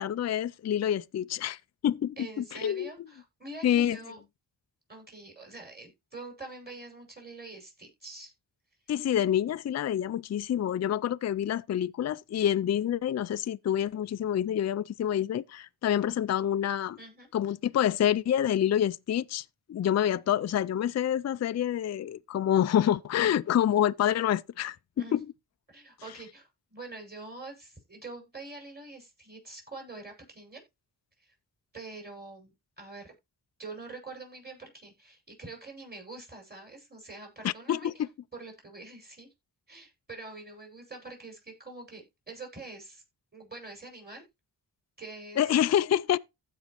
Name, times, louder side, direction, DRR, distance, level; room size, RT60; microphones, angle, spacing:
voice 1, 0.0-2.9 3.6-4.0 8.9-17.0 17.3-25.3 37.4-37.9 45.4-46.2, left 10 dB, 40° left, 0.4 m, -27 dB
voice 2, 2.2-4.2 4.9-8.3 17.0-17.3 25.0-25.2 25.7-30.6 31.2-31.3 31.7-33.1 33.6-37.9 38.3-39.3 39.7-43.0 43.3-44.2 45.0-45.6, right 3 dB, 25° right, 6.1 m, -45 dB
15.5 x 5.3 x 3.0 m
wide cardioid pair, 90°, 41 cm